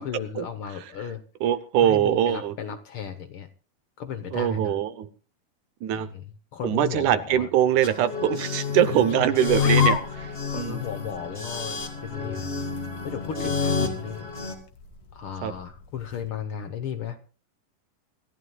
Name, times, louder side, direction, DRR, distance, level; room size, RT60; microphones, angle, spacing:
voice 1, 0.0-1.2 1.8-3.5 4.0-4.8 5.9-7.5 8.9-9.3 10.5-12.5 13.0-14.3 15.1-17.2, left 8 dB, 75° left, 9 dB, 1.2 m, -35 dB
voice 2, 1.4-2.5 4.3-5.1 5.8-6.1 6.6-10.8 15.4-15.5, right 10 dB, 75° right, 12 dB, 2.1 m, -23 dB
sound 1, 7.8-14.5, left 6 dB, 20° left, 2.5 m, -28 dB
sound 2, 9.5-16.3, left 7 dB, 55° left, 2.2 m, -37 dB
27.0 x 14.5 x 2.3 m, 0.37 s
omnidirectional pair, 3.7 m